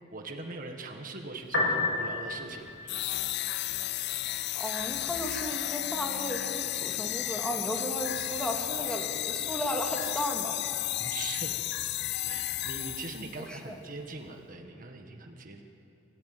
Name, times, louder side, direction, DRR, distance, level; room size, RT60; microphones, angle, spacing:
voice 1, 0.0-3.3 11.0-11.5 12.2-15.6, right 3 dB, 45° right, 3 dB, 1.6 m, -42 dB
Piano, 1.4-14.4, left 2 dB, 80° left, 4.6 m, -39 dB
sound 1, 2.9-13.4, left 14 dB, 60° left, 0.5 m, -33 dB
voice 2, 4.6-10.6 13.5-13.8, equal, 5° left, 1 dB, 2.5 m, -35 dB
sound 2, 4.6-13.0, equal, 20° right, 5.6 m, -55 dB
26.0 x 15.0 x 9.4 m, 2.7 s
head